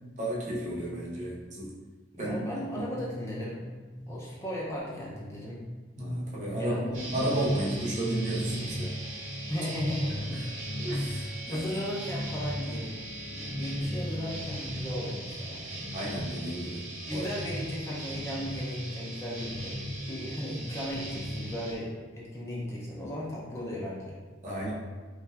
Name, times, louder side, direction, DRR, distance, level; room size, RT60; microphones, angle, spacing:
voice 1, 0.2-1.7 2.2-2.5 2.7-2.9 4.0-4.2 6.0-8.9 10.1-10.5 10.8-11.6 15.9-17.3 24.4-24.7, right 1 dB, 40° right, -5 dB, 0.6 m, -32 dB
voice 2, 2.1-3.7 4.1-5.6 6.6-7.0 9.5-10.4 11.5-15.9 17.1-24.2, equal, 15° left, -6 dB, 0.4 m, -36 dB
sound 1, 6.9-21.7, equal, 70° right, 0.8 m, -36 dB
3.2 x 2.6 x 2.2 m, 1.4 s
head